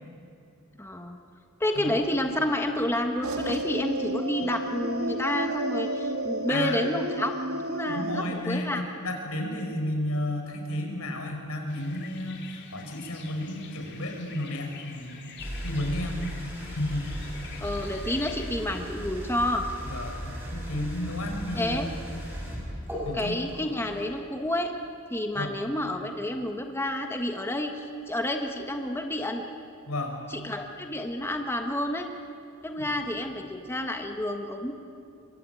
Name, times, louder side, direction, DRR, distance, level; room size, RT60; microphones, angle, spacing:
voice 1, 0.8-1.2 1.6-7.3 7.7-8.8 17.6-19.7 21.6-21.9 23.1-24.7 25.1-29.5 30.3-32.1 32.6-34.7, left 1 dB, 10° left, 4 dB, 1.3 m, -29 dB
sound 1, 3.2-8.2, right 1 dB, 80° right, 1.6 m, -31 dB
voice 2, 6.5-6.8 7.9-15.3 15.6-17.0 19.9-21.8 23.0-23.4 25.4-25.6 29.9-30.2 32.9-33.0, left 1 dB, 85° left, 3 dB, 5.1 m, -32 dB
sound 2, 11.7-18.5, left 6 dB, 55° left, 2.9 m, -47 dB
sound 3, 15.4-24.0, equal, 10° right, 7.4 m, -37 dB
25.5 x 22.5 x 9.2 m, 2.4 s
head